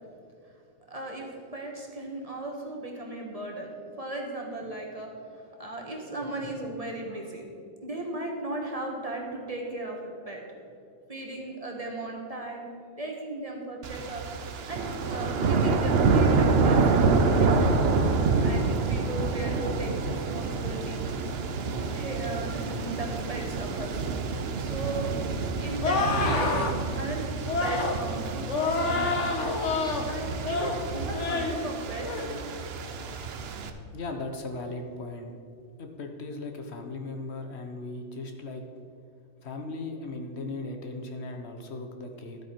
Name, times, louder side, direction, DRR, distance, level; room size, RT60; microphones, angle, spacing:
voice 1, 0.9-7.4 7.8-10.4 11.1-12.7 13.0-14.2 14.7-14.8 15.1-17.8 18.4-21.0 21.9-24.0 24.6-27.3 27.6-29.3 30.0-32.4, right 2 dB, 30° right, 0 dB, 1.5 m, -36 dB
sound 1, 13.8-33.7, right 4 dB, 60° right, 0.9 m, -27 dB
sound 2, 25.8-26.7 27.5-28.0 28.5-30.0 30.4-30.8 31.1-31.6 32.0-32.3, left 3 dB, 80° left, 1.4 m, -28 dB
voice 2, 33.9-35.4 35.8-38.6 39.4-42.4, left 2 dB, 65° left, 4 dB, 1.2 m, -37 dB
12.0 x 8.3 x 4.5 m, 2.4 s
omnidirectional pair, 1.2 m